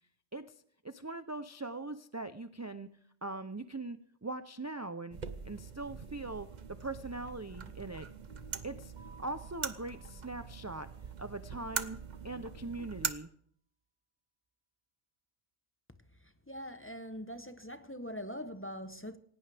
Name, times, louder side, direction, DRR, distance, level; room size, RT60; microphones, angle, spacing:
voice 1, 0.8-2.9 3.2-5.2 5.4-8.1 8.6-8.9 9.2-10.9 11.2-12.0 12.2-13.3, right 2 dB, 20° right, 0.4 m, -41 dB
sound 1, 5.1-13.1, right 6 dB, 40° right, 0.9 m, -42 dB
Keyboard (musical), 9.0-11.5, right 6 dB, 85° right, 3.8 m, -60 dB
voice 2, 16.5-19.2, equal, 15° left, 0.8 m, -42 dB
18.5 x 17.0 x 3.4 m
omnidirectional pair, 1.2 m